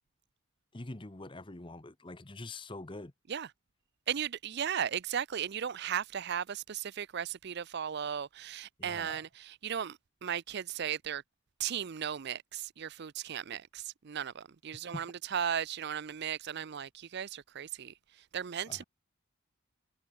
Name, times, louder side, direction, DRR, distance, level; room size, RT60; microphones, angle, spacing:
voice 1, 0.7-3.1 8.8-9.2 14.9-15.0 18.7-18.8, left 2 dB, 25° left, 0.9 m, -44 dB
voice 2, 4.1-11.2 11.6-17.9 18.3-18.8, right 8 dB, 50° right, 0.5 m, -36 dB
head